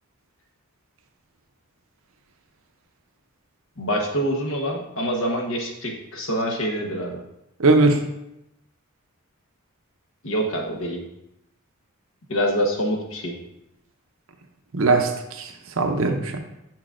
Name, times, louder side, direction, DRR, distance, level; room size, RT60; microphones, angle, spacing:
voice 1, 3.8-7.2 10.2-11.0 12.3-13.3, equal, 65° left, 1 dB, 1.1 m, -25 dB
voice 2, 7.6-8.0 14.7-16.4, right 3 dB, 60° right, 5 dB, 0.7 m, -20 dB
7.1 x 5.9 x 2.5 m, 0.86 s
head